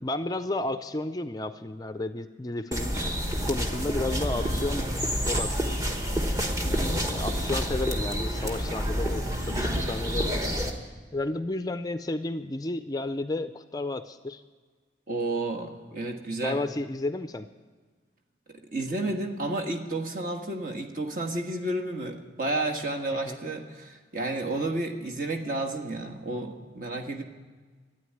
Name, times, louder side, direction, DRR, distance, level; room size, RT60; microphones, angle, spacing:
voice 1, 0.0-3.0 3.4-4.9 5.3-5.8 6.6-10.6 11.1-14.4 16.4-17.5 23.3-23.4, left 2 dB, 20° left, 11 dB, 0.4 m, -32 dB
sound 1, 2.7-10.7, equal, 20° right, 1.2 m, -28 dB
voice 2, 6.6-7.0 15.1-16.6 18.5-27.2, right 2 dB, 50° right, 2 dB, 1.5 m, -31 dB
12.5 x 9.3 x 9.7 m, 1.5 s
head